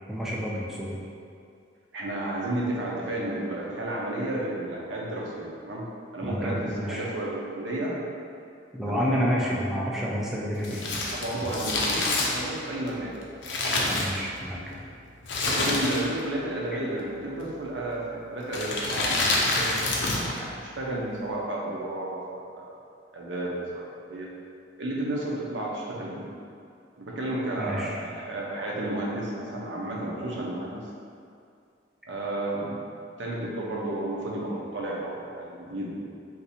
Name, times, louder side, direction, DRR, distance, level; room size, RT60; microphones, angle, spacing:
voice 1, 0.1-1.0 6.2-7.1 8.7-10.8 13.8-14.8 27.6-28.0, equal, ahead, -5 dB, 0.4 m, -29 dB
voice 2, 1.9-5.8 6.1-8.0 8.9-9.3 11.1-13.1 13.6-13.9 15.4-19.8 20.4-22.7 23.1-24.3 24.8-26.3 27.0-30.8 32.1-36.1, right 1 dB, 75° right, -4 dB, 0.7 m, -32 dB
Crumpling crinkling, 10.6-14.6 15.2-16.3 16.5-16.6 17.5-17.8 18.5-20.4 20.6-20.7, left 2 dB, 75° left, 0.6 m, -27 dB
2.7 x 2.6 x 4.1 m, 2.4 s
head